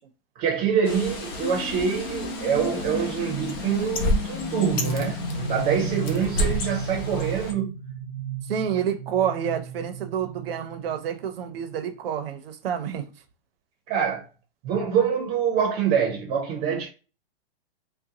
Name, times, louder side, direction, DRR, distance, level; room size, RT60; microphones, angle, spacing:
voice 1, 0.3-7.7 13.9-14.3 14.6-16.9, right 7 dB, 25° right, 0.7 m, -25 dB
Bird, 0.8-7.5, left 1 dB, 25° left, 0.4 m, -31 dB
sound 1, 1.4-11.7, right 1 dB, 50° left, 1.0 m, -34 dB
voice 2, 8.5-13.1, right 8 dB, 70° right, 0.7 m, -28 dB
3.8 x 2.2 x 2.8 m
hypercardioid pair, 160°, 30 cm